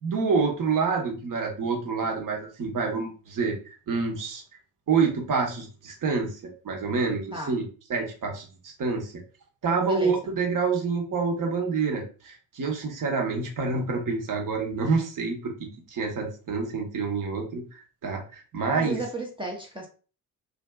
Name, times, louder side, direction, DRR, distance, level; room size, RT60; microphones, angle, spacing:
voice 1, 0.0-3.6 3.9-4.4 4.9-9.2 9.6-19.0, right 4 dB, 45° right, 0.9 m, -27 dB
voice 2, 18.7-19.9, right 2 dB, 10° right, 0.5 m, -34 dB
2.4 x 2.3 x 2.2 m
hypercardioid pair, 50°, 45 cm